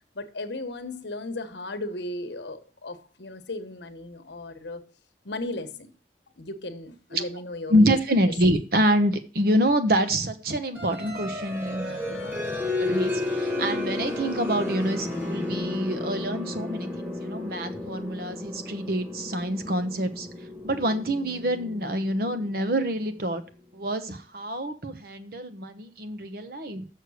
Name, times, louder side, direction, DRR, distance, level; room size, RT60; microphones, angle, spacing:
voice 1, 0.1-4.8 5.2-5.9 6.4-8.0, left 2 dB, 75° left, 1.1 m, -36 dB
voice 2, 7.7-12.3 12.8-20.3 20.6-23.4 23.7-26.9, right 1 dB, 55° right, 1.0 m, -26 dB
sound 1, 10.7-23.3, left 2 dB, 10° right, 1.8 m, -32 dB
6.7 x 6.5 x 6.3 m
head